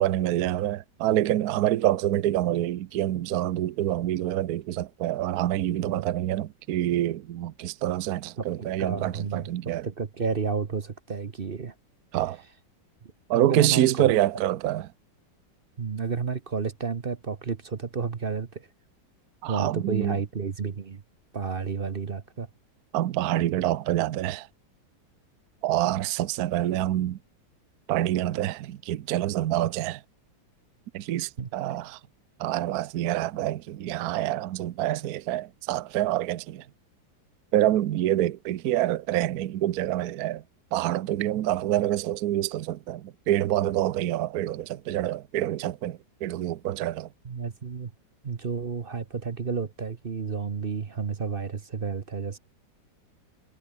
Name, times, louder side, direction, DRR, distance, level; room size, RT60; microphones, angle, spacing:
voice 1, 0.0-9.9 12.1-12.4 13.3-14.9 19.4-20.2 22.9-24.5 25.6-27.2 27.9-30.0 30.9-32.0 32.4-36.7 37.5-40.4 40.7-47.1, right 13 dB, 60° right, 1.1 m, -26 dB
voice 2, 8.4-9.5 9.8-11.7 13.3-14.1 15.8-18.7 19.5-21.0 21.3-22.5 31.4-31.5 47.2-47.9 48.2-52.4, right 5 dB, 40° right, 0.9 m, -31 dB
omnidirectional pair, 2.0 m